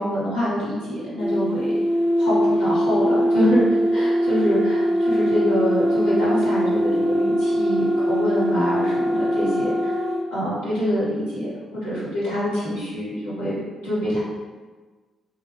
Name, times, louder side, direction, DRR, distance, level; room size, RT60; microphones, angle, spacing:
voice 1, 0.0-1.7 2.2-3.6 3.9-9.9 10.3-11.5 11.7-13.6 13.8-14.2, equal, 75° left, -13 dB, 1.1 m, -25 dB
sound 1, 1.2-10.3, equal, 40° right, 0.4 m, -21 dB
3.1 x 2.3 x 3.3 m, 1.3 s
figure-of-eight pair, 40°, 0 cm